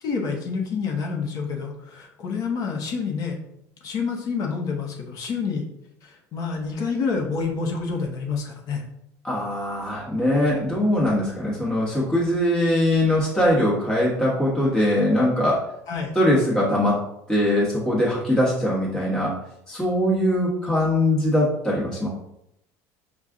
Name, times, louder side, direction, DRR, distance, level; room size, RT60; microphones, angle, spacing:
voice 1, 0.0-3.4 3.8-5.6 6.0-8.8 15.9-16.1, left 5 dB, 50° left, 2 dB, 0.8 m, -28 dB
voice 2, 9.2-15.7 16.1-19.3 19.7-22.1, left 1 dB, 10° left, -6 dB, 1.2 m, -21 dB
5.5 x 2.4 x 3.6 m, 0.79 s
cardioid pair, 140°, 8 cm